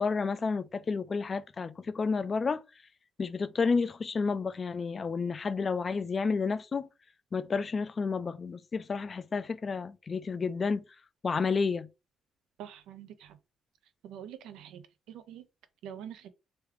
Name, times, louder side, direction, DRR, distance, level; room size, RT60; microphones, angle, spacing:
voice 1, 0.0-2.6 3.2-6.9 7.3-10.8 11.2-11.9, left 4 dB, 40° left, 0.3 m, -30 dB
voice 2, 12.6-13.4 14.0-15.5 15.8-16.3, right 9 dB, 90° right, 0.5 m, -45 dB
3.1 x 2.3 x 3.1 m
cardioid pair, 90°, 0 cm